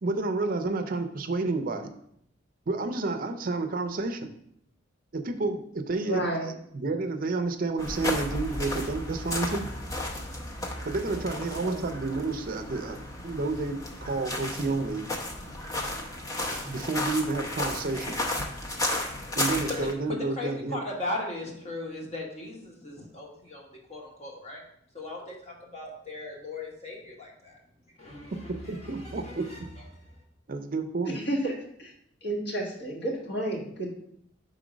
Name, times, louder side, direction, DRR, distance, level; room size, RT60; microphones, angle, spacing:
voice 1, 0.0-1.9 2.7-4.3 5.1-9.7 10.8-15.1 16.7-18.2 19.4-20.8 28.3-29.6 30.5-31.2, right 3 dB, 50° right, 7 dB, 0.5 m, -30 dB
voice 2, 6.0-6.5 11.0-11.8 31.0-31.9 32.2-33.9, right 1 dB, 60° left, -1 dB, 1.5 m, -32 dB
sound 1, 7.8-19.9, left 1 dB, 20° left, 0.7 m, -33 dB
voice 3, 20.1-24.6 24.9-27.6 28.0-30.2, left 2 dB, 35° left, -1 dB, 1.3 m, -38 dB
4.9 x 3.8 x 5.0 m, 0.71 s
head